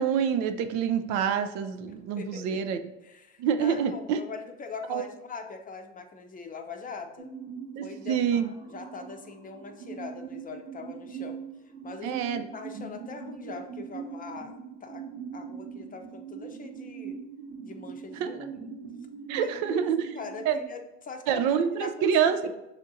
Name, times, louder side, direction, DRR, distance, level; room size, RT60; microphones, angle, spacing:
voice 1, 0.0-2.8 3.4-4.2 4.9-5.0 7.8-8.5 12.0-12.5 18.2-18.3 19.3-20.0 20.5-20.6 21.3-22.5, right 8 dB, 65° right, 9 dB, 0.5 m, -26 dB
voice 2, 2.2-2.6 3.0-7.3 7.8-11.4 11.8-14.5 14.8-15.0 15.3-17.2 17.6-18.6 19.4-19.9 20.1-22.5, left 5 dB, 25° left, 5 dB, 0.6 m, -42 dB
sound 1, 7.2-20.6, right 6 dB, 85° right, 1.2 m, -41 dB
6.3 x 2.5 x 2.7 m, 0.94 s
hypercardioid pair, 75°, 31 cm